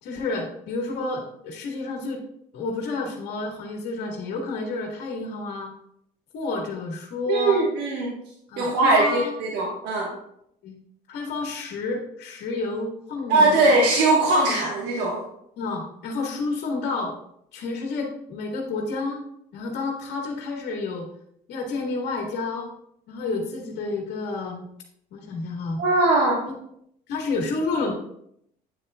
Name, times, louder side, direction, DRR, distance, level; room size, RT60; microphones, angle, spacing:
voice 1, 0.0-2.2 2.5-5.7 6.3-7.6 8.5-9.3 10.6-10.8 11.1-13.7 15.6-17.1 17.5-19.2 19.5-21.1 21.5-22.7 23.1-24.6 25.1-25.8 26.5-26.6 27.1-27.9, left 3 dB, 80° left, 1 dB, 1.5 m, -30 dB
voice 2, 7.3-8.1 8.6-10.1 13.3-15.2 25.8-26.4, right 2 dB, 90° right, -2 dB, 1.3 m, -20 dB
8.8 x 7.6 x 2.2 m, 0.74 s
cardioid pair, 110°, 17 cm